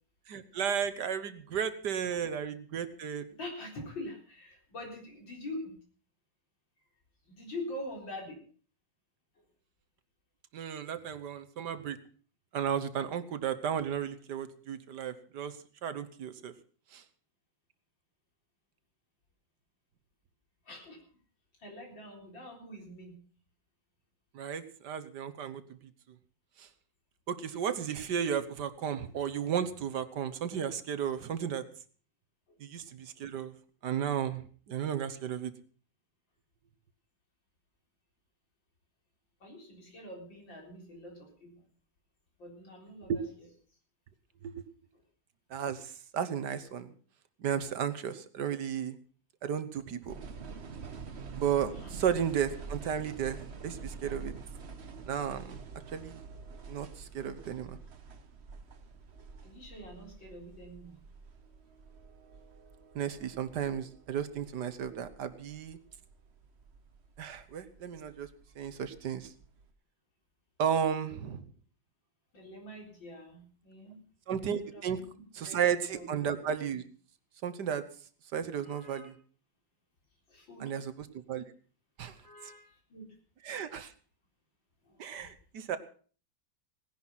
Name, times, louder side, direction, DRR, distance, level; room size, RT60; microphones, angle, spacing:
voice 1, 0.3-3.2 10.5-12.0 12.5-15.6 15.8-16.5 16.9-17.0 24.3-25.6 26.6-26.7 27.3-31.6 32.6-33.5 33.8-35.5 43.1-43.2 44.4-44.5 45.5-46.9 47.4-49.0 49.4-50.2 51.4-53.4 53.6-54.3 55.1-55.6 55.9-56.3 56.7-57.8 62.9-65.8 67.2-68.3 68.6-69.3 70.6-71.5 74.3-75.0 75.3-76.8 77.4-77.8 78.3-79.1 80.6-80.9 81.3-81.4 82.0-82.2 83.4-83.9 85.0-85.8, right 8 dB, 65° right, 12 dB, 1.7 m, -34 dB
voice 2, 3.4-5.8 7.3-8.4 9.4-9.5 20.6-21.0 21.6-23.2 32.5-32.6 35.1-35.4 39.4-41.6 42.4-43.3 51.8-52.0 59.4-61.0 72.3-74.0 74.7-75.1 75.4-75.6 75.9-76.1 78.6-79.1 80.3-80.7 82.0-83.2 84.8-85.3, left 1 dB, 85° left, 1 dB, 4.7 m, -45 dB
sound 1, 50.1-69.7, right 4 dB, 40° right, 1.2 m, -48 dB
18.0 x 10.5 x 5.7 m, 0.42 s
omnidirectional pair, 2.0 m